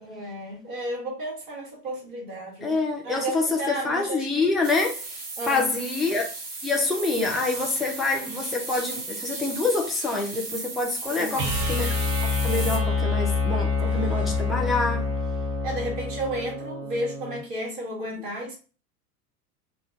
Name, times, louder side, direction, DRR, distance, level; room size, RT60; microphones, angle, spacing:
voice 1, 0.0-2.8 3.0-4.5 5.4-5.7 11.1-11.5 13.8-14.2 15.6-18.5, right 1 dB, 50° right, 2.2 m, -33 dB
voice 2, 2.6-5.0 5.5-6.3 6.6-15.1, left 3 dB, ahead, 0.4 m, -26 dB
sound 1, 4.6-12.8, right 3 dB, 30° right, 2.3 m, -35 dB
sound 2, 11.3-17.4, left 4 dB, 65° right, 1.4 m, -26 dB
4.1 x 2.3 x 4.4 m
figure-of-eight pair, 85°, 48 cm